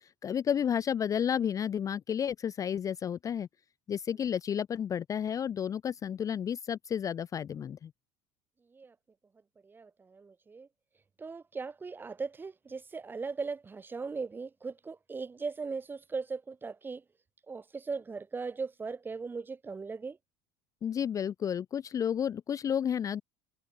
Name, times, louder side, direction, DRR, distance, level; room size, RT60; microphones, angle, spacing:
voice 1, 0.2-3.5 3.9-7.9 20.8-23.2, left 8 dB, 25° left, 0.5 m, -31 dB
voice 2, 9.6-10.7 11.2-17.0 17.5-20.2, right 4 dB, 15° right, 0.7 m, -38 dB
supercardioid pair, 130°, 13 cm